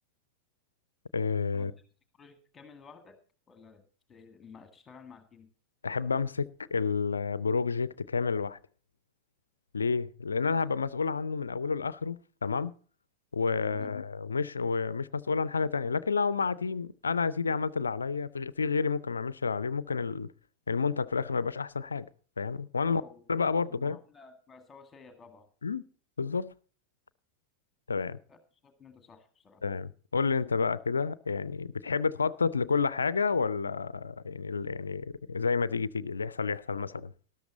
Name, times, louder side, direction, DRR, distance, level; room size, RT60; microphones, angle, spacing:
voice 1, 1.1-1.7 5.8-8.6 9.7-12.7 13.3-20.3 20.7-22.1 22.4-23.0 23.3-24.0 25.6-25.8 26.2-26.5 27.9-28.2 29.6-37.1, left 5 dB, 75° left, 0.4 m, -30 dB
voice 2, 2.2-3.2 3.5-5.5 13.7-13.9 22.8-23.3 23.7-25.5 28.3-28.4 28.6-29.6, left 5 dB, 20° left, 1.8 m, -53 dB
13.0 x 12.0 x 4.0 m
figure-of-eight pair, 90°, 0 cm